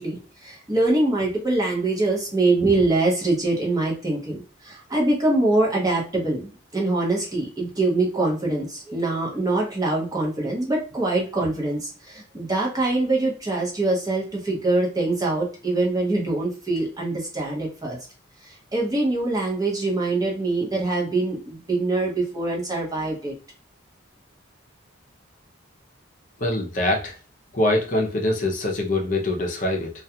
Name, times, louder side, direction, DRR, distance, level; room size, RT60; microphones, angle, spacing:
voice 1, 0.0-18.0 18.4-23.3, right 2 dB, 20° right, -2 dB, 0.8 m, -24 dB
voice 2, 26.4-27.2 27.5-29.9, left 1 dB, 40° left, 0 dB, 0.5 m, -23 dB
2.3 x 2.3 x 2.7 m, 0.38 s
head